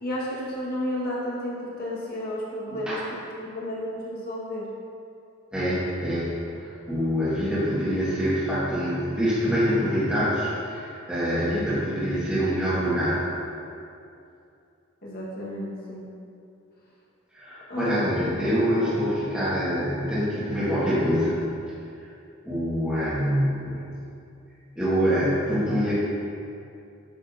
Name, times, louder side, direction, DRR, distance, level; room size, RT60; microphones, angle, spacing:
voice 1, 0.0-3.0 3.3-4.7 15.0-16.1 17.7-18.3 25.3-25.4, left 1 dB, 50° left, -5 dB, 1.5 m, -32 dB
voice 2, 5.5-13.2 17.3-21.3 22.0-22.1 22.4-23.9 24.7-25.9, equal, 5° right, -12 dB, 1.6 m, -25 dB
9.0 x 6.1 x 2.7 m, 2.6 s
head